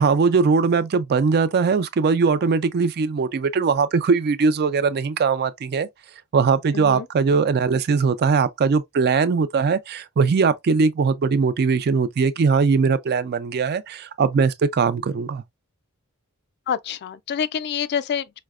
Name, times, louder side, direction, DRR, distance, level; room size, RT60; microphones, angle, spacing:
voice 1, 0.0-5.9 6.3-15.4, right 5 dB, 45° right, 0.4 m, -20 dB
voice 2, 6.7-7.1 16.7-18.4, left 7 dB, 50° left, 0.3 m, -27 dB
4.7 x 2.1 x 2.3 m
head